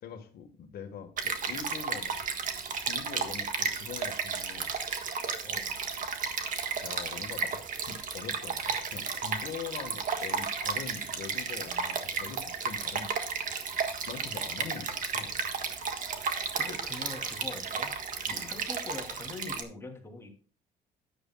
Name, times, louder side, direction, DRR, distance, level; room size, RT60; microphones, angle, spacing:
voice 1, 0.0-2.2 2.8-4.7 6.8-13.1 14.1-15.3 18.3-18.5, left 7 dB, 65° left, 7 dB, 1.7 m, -43 dB
Stream, 1.2-19.6, right 6 dB, 50° right, 1.6 m, -33 dB
voice 2, 16.5-17.9 18.3-20.3, left 3 dB, 15° left, 1 dB, 2.8 m, -43 dB
13.0 x 10.0 x 2.4 m, 0.39 s
cardioid pair, 110°, 17 cm